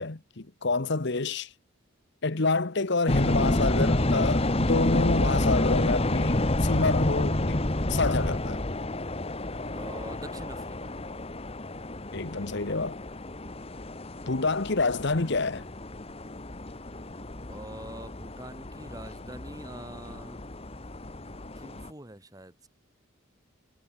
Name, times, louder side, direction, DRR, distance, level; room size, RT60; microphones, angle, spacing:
voice 1, 0.0-1.5 2.2-7.6 7.9-8.6 12.1-13.0 14.3-15.7, left 3 dB, 50° left, 1.1 m, -28 dB
sound 1, 3.1-21.9, left 1 dB, 25° left, 1.3 m, -29 dB
voice 2, 9.7-10.9 17.5-20.5 21.6-22.7, right 1 dB, 15° right, 2.0 m, -45 dB
head